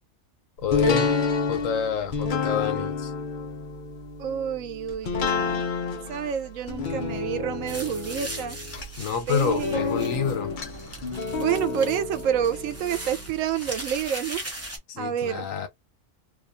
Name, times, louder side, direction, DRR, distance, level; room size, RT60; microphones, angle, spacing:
voice 1, 0.6-1.2 1.5-3.1 9.0-10.5 14.9-15.7, left 8 dB, 90° left, 1.1 m, -27 dB
sound 1, 0.7-13.6 14.0-14.1, left 4 dB, 50° left, 0.6 m, -30 dB
voice 2, 4.2-5.7 6.1-8.6 9.3-10.1 11.3-14.4 15.0-15.5, right 9 dB, 85° right, 1.0 m, -28 dB
sound 2, 7.7-14.8, right 1 dB, 15° right, 0.6 m, -39 dB
2.7 x 2.3 x 2.5 m
omnidirectional pair, 1.3 m